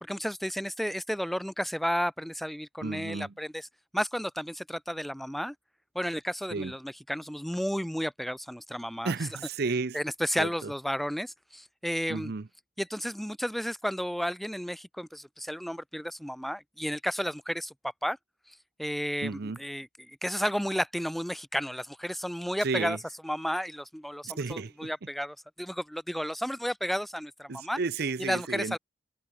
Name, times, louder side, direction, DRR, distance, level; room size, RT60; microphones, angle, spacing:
voice 1, 0.0-3.7 3.9-5.5 5.9-9.1 9.9-12.3 12.8-17.7 18.0-18.2 18.5-23.0 23.2-27.8 28.2-28.8, equal, ahead, 0.5 m, -32 dB
voice 2, 2.8-3.3 6.5-6.7 9.0-10.0 10.4-10.7 12.1-12.5 19.2-19.6 22.6-23.0 24.2-24.9 27.5-28.8, right 4 dB, 50° right, 0.6 m, -33 dB
head